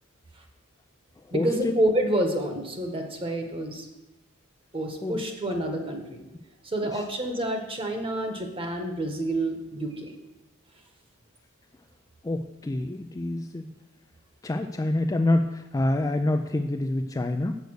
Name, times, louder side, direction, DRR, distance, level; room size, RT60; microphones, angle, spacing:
voice 1, 1.3-3.9 4.7-6.2 6.6-10.1, right 1 dB, 25° right, 4 dB, 1.3 m, -28 dB
voice 2, 12.2-13.7 14.4-17.6, left 1 dB, 15° left, 6 dB, 0.3 m, -26 dB
8.0 x 6.8 x 6.4 m, 1.0 s
head